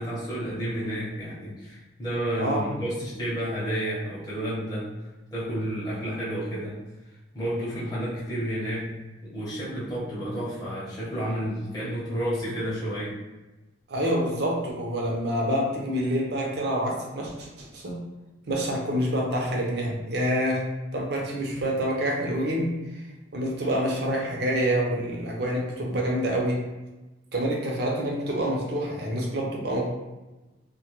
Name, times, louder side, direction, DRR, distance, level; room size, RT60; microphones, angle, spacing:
voice 1, 0.0-6.8 7.3-8.9 9.2-13.2, equal, 20° left, -10 dB, 0.7 m, -31 dB
voice 2, 13.9-18.0 18.5-23.0 23.3-26.7 27.3-29.9, equal, 55° right, -1 dB, 0.6 m, -27 dB
2.2 x 2.1 x 2.9 m, 1.1 s
head